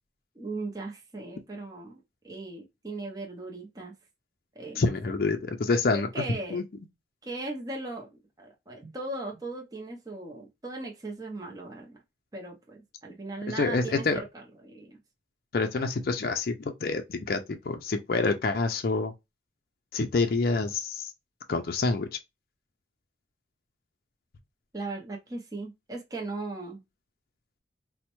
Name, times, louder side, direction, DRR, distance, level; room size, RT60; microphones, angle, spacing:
voice 1, 0.4-3.9 4.6-5.1 5.9-6.6 7.2-8.1 8.4-12.0 12.3-14.0 14.3-15.0 24.7-26.8, right 2 dB, 20° right, 0.6 m, -38 dB
voice 2, 4.8-6.1 6.5-6.6 13.5-14.2 15.5-19.1 19.9-21.1 21.5-22.2, left 3 dB, 55° left, 0.4 m, -27 dB
4.2 x 2.1 x 2.9 m
head